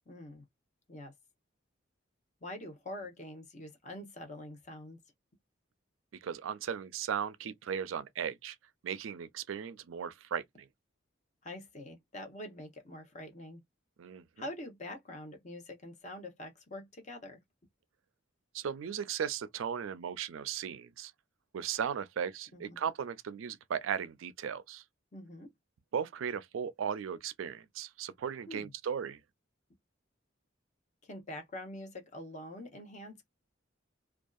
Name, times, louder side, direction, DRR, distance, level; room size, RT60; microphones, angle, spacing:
voice 1, 0.1-0.4 0.9-1.1 2.4-5.0 11.4-13.6 14.4-17.4 22.5-22.8 25.1-25.5 28.5-28.7 31.0-33.3, left 1 dB, 35° left, 0.8 m, -45 dB
voice 2, 6.2-8.6 8.8-10.7 14.0-14.5 18.5-21.1 21.5-24.8 25.9-29.2, right 7 dB, 90° right, 0.4 m, -37 dB
2.6 x 2.3 x 2.3 m
head